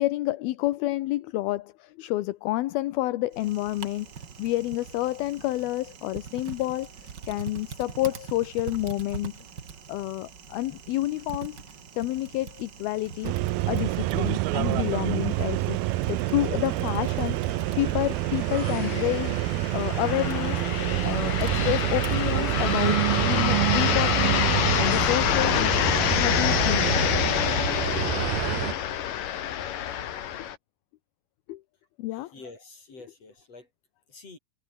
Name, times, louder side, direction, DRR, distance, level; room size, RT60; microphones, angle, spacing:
voice 1, 0.0-9.3 9.9-11.6 11.9-13.3 13.7-20.6 21.0-24.5 24.8-26.9 29.1-29.2 29.5-29.6 31.5-31.6 32.0-32.3, left 17 dB, 80° left, 2.8 m, -29 dB
Typing, 3.3-22.9, right 6 dB, 40° right, 1.6 m, -43 dB
sound 1, 13.2-28.7, right 19 dB, 85° right, 2.6 m, -27 dB
sound 2, 16.5-16.6 16.9-17.0 17.7-30.6, left 10 dB, 65° left, 3.3 m, -27 dB
voice 2, 32.1-33.7 34.1-34.4, left 3 dB, 40° left, 8.2 m, -47 dB
omnidirectional pair, 4.4 m